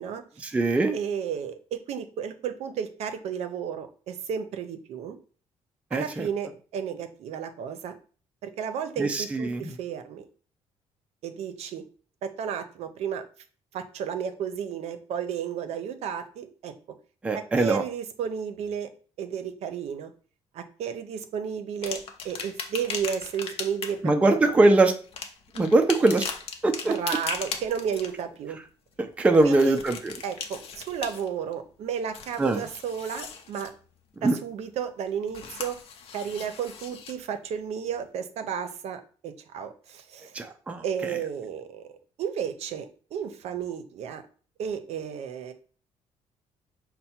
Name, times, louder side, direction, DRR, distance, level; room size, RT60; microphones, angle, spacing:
voice 1, 0.4-1.0 5.9-6.3 9.0-9.7 17.2-17.8 24.0-24.9 25.6-26.3 26.6-26.9 29.0-30.1 32.4-32.6 34.2-34.4 40.3-40.8, right 2 dB, 10° right, 6 dB, 0.3 m, -22 dB
voice 2, 0.9-5.2 5.9-7.9 8.4-10.3 11.2-11.8 12.2-13.2 13.7-16.7 17.3-18.9 19.2-20.1 20.5-24.5 26.8-28.6 29.4-29.8 30.2-33.7 34.2-35.8 36.1-40.3 40.8-41.9 42.2-44.2 44.6-45.5, right 7 dB, 65° right, 9 dB, 0.6 m, -33 dB
sound 1, 21.8-24.1 25.0-28.2 29.2-31.5 31.9-33.7 35.3-37.1 37.9-38.0, left 6 dB, 55° left, 0.6 m, -38 dB
5.4 x 2.2 x 4.3 m, 0.41 s
cardioid pair, 160°, 12 cm